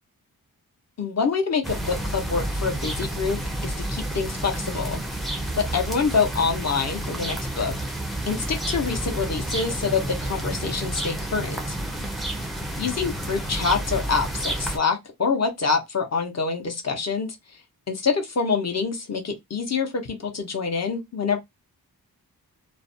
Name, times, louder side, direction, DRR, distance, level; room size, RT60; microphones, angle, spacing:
voice 1, 1.0-5.0 5.6-7.7 8.3-11.8 12.8-17.4 17.9-21.4, left 5 dB, 45° left, 0.7 m, -26 dB
sound 1, 1.6-14.8, right 1 dB, ahead, 0.4 m, -30 dB
2.4 x 2.1 x 2.6 m
wide cardioid pair, 160°, 36 cm